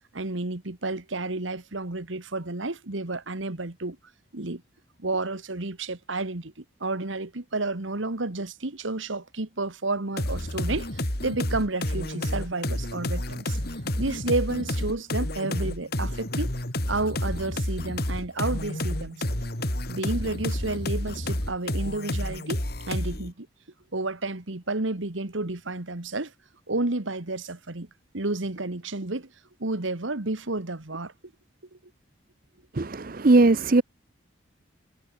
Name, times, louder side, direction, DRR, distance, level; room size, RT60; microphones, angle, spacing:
voice 1, 0.1-4.0 4.3-4.6 5.0-13.6 14.0-16.5 16.9-19.3 19.9-23.5 23.9-26.3 26.7-27.9 28.1-29.3 29.6-31.1, right 2 dB, 80° right, 1.8 m, -31 dB
sound 1, 10.2-23.3, left 1 dB, 55° left, 4.0 m, -30 dB
voice 2, 32.8-33.8, right 2 dB, 45° right, 0.7 m, -19 dB
head